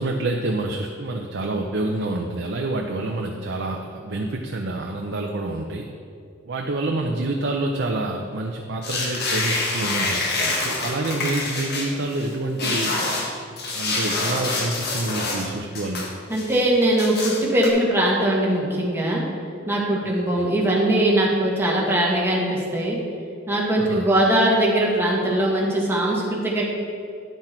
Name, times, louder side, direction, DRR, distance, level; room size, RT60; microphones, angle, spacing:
voice 1, 0.0-5.9 6.5-13.0 13.7-16.1 20.3-20.5 23.8-24.1, right 2 dB, 60° right, 2 dB, 0.6 m, -27 dB
sound 1, 8.8-12.3 12.6-15.5 15.7-16.6 17.0-17.7, left 2 dB, 55° left, 1.3 m, -26 dB
voice 2, 16.3-19.3 19.7-23.0 23.5-26.7, right 1 dB, 10° right, -4 dB, 1.6 m, -21 dB
10.0 x 6.0 x 4.4 m, 2.4 s
head